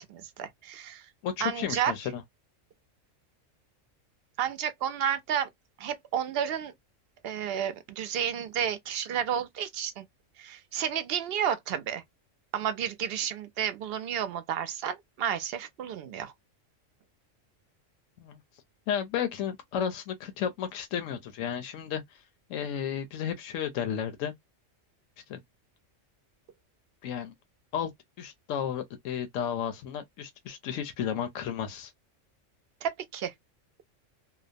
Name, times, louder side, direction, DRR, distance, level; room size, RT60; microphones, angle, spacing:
voice 1, 0.0-1.1 1.4-1.9 4.4-5.5 5.8-6.7 7.2-10.1 10.4-12.0 12.5-16.3 32.8-33.3, right 9 dB, 60° right, 0.7 m, -31 dB
voice 2, 1.2-2.2 18.2-18.4 18.9-22.2 22.5-24.3 25.3-25.4 27.0-27.3 27.7-27.9 28.2-31.9, left 8 dB, 85° left, 1.0 m, -33 dB
2.8 x 2.0 x 2.4 m
omnidirectional pair, 1.3 m